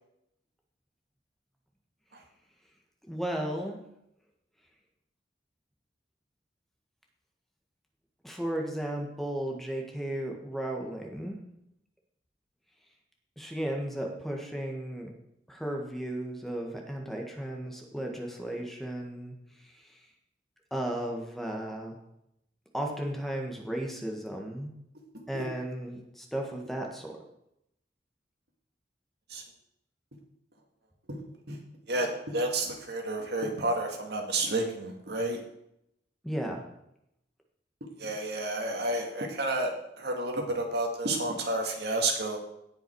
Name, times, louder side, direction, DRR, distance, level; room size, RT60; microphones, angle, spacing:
voice 1, 3.0-3.8 8.2-11.5 13.4-15.1 15.5-20.1 20.7-22.0 22.7-24.7 25.3-27.2 36.2-36.6, right 1 dB, ahead, 1 dB, 1.5 m, -35 dB
voice 2, 31.9-35.4 37.8-39.7 40.0-42.4, right 2 dB, 70° right, 2 dB, 2.0 m, -30 dB
17.0 x 5.7 x 4.7 m, 0.80 s
head